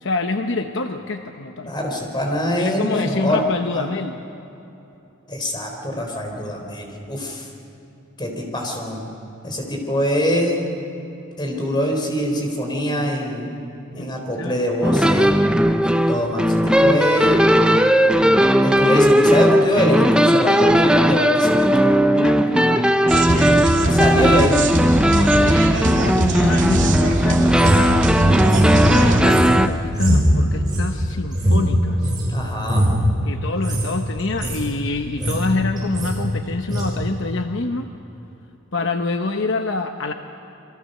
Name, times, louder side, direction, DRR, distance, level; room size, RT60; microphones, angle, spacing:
voice 1, 0.0-1.7 2.6-4.2 14.0-14.7 22.1-24.0 24.3-24.4 25.1-28.1 28.8-32.1 33.3-37.9 38.7-40.1, left 3 dB, 60° left, 6 dB, 0.9 m, -26 dB
voice 2, 1.6-3.4 3.7-3.9 5.3-7.4 8.2-9.0 9.4-10.7 11.4-13.5 13.9-15.3 15.8-17.4 18.6-21.7 23.8-24.5 32.3-32.9, equal, 20° left, 1 dB, 4.1 m, -23 dB
sound 1, 14.8-29.7, equal, 5° right, 0.7 m, -17 dB
sound 2, 23.1-29.2, right 1 dB, 60° right, 2.3 m, -22 dB
sound 3, 27.5-32.3 32.6-33.0 33.5-33.9 34.2-34.6 35.0-35.5 35.8-36.2 36.7-36.9, equal, 20° right, 7.4 m, -21 dB
28.0 x 23.0 x 6.7 m, 2.9 s
head